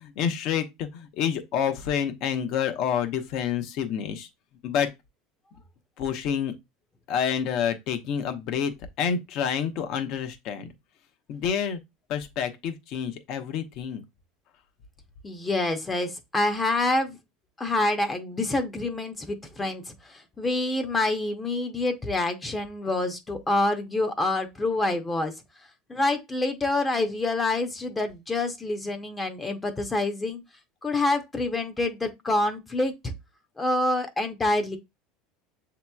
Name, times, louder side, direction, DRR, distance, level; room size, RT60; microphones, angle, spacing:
voice 1, 0.0-4.3 4.6-4.9 6.0-6.5 7.1-8.7 9.0-10.7 11.3-11.8 12.1-14.0, left 8 dB, 50° left, 0.8 m, -28 dB
voice 2, 15.2-17.2 17.6-25.3 25.9-30.4 30.8-33.1 33.6-34.8, left 2 dB, 15° left, 0.7 m, -27 dB
7.2 x 2.9 x 2.3 m
supercardioid pair, 135°, 0 cm